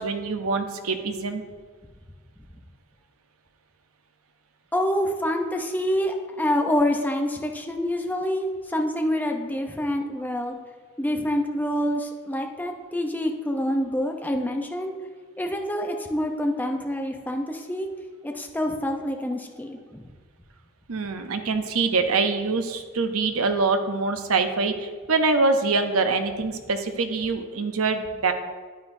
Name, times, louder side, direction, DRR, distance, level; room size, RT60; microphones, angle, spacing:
voice 1, 0.0-1.4 20.9-28.3, right 4 dB, 80° right, 7 dB, 0.7 m, -24 dB
voice 2, 4.7-10.6 11.0-14.9 15.4-17.9 18.2-20.0, equal, 10° left, 3 dB, 0.6 m, -26 dB
9.5 x 9.2 x 2.7 m, 1.5 s
head